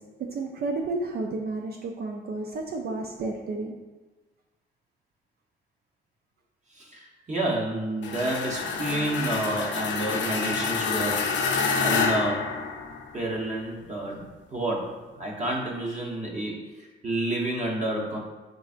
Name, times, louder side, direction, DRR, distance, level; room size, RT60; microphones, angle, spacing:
voice 1, 0.2-3.8, right 3 dB, 55° right, 2 dB, 0.4 m, -31 dB
voice 2, 6.7-12.6 13.1-18.2, right 1 dB, 35° right, -2 dB, 0.9 m, -30 dB
sound 1, 8.0-13.2, left 5 dB, 70° left, 0.5 m, -28 dB
4.0 x 3.3 x 2.4 m, 1.2 s
cardioid pair, 90°, 20 cm